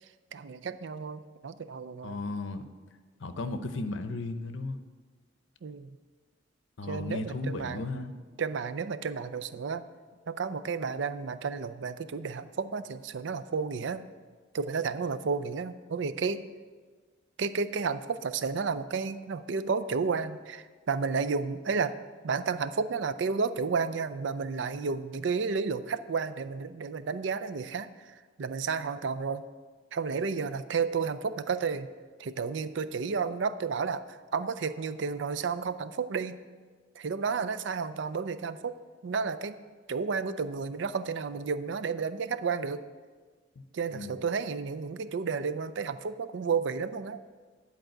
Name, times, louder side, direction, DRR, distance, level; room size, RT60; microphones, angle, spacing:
voice 1, 0.3-2.2 5.6-6.0 6.8-7.8 8.4-9.8 10.3-14.1 14.5-16.5 17.4-22.0 22.2-29.4 29.9-31.9 32.2-36.4 37.0-39.6 39.9-42.9 43.7-47.2, right 5 dB, 65° right, 12 dB, 0.4 m, -32 dB
voice 2, 2.0-2.7 3.2-4.8 6.8-8.1 43.9-44.1, left 2 dB, 75° left, 10 dB, 0.7 m, -35 dB
10.5 x 4.8 x 7.7 m, 1.5 s
head